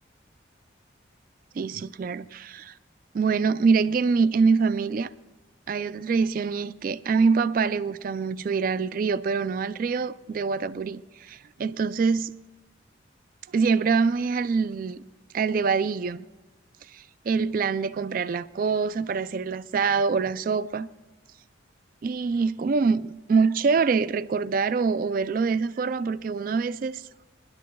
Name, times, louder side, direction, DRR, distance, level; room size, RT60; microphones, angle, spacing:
voice 1, 1.5-2.8 3.1-5.1 5.7-12.3 13.5-15.0 15.3-16.2 16.8-20.9 22.0-27.1, right 5 dB, 45° right, 0.3 m, -25 dB
26.0 x 10.5 x 2.3 m
head